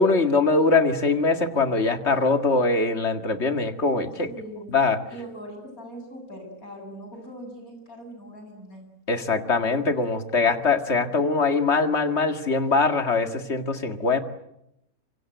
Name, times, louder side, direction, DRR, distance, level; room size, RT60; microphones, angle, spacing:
voice 1, 0.0-4.3 4.7-5.0 9.1-14.2, left 3 dB, 50° left, 8 dB, 2.2 m, -22 dB
voice 2, 4.3-4.7 5.1-8.9, right 1 dB, 80° left, 4 dB, 8.2 m, -41 dB
26.0 x 25.0 x 8.0 m, 0.82 s
omnidirectional pair, 1.5 m